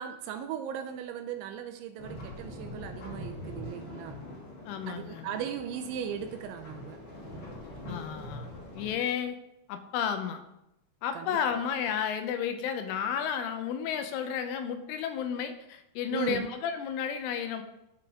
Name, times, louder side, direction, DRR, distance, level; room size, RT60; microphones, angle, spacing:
voice 1, 0.0-4.2 4.9-7.0 11.1-11.4 16.1-16.4, right 9 dB, 85° right, 8 dB, 2.9 m, -37 dB
sound 1, 2.0-8.9, left 1 dB, 50° left, 1.8 m, -43 dB
voice 2, 4.7-5.3 7.9-8.5 8.7-9.4 9.7-10.4 11.0-17.6, left 8 dB, 85° left, 7 dB, 3.3 m, -32 dB
15.5 x 5.2 x 3.7 m, 0.85 s
omnidirectional pair, 5.6 m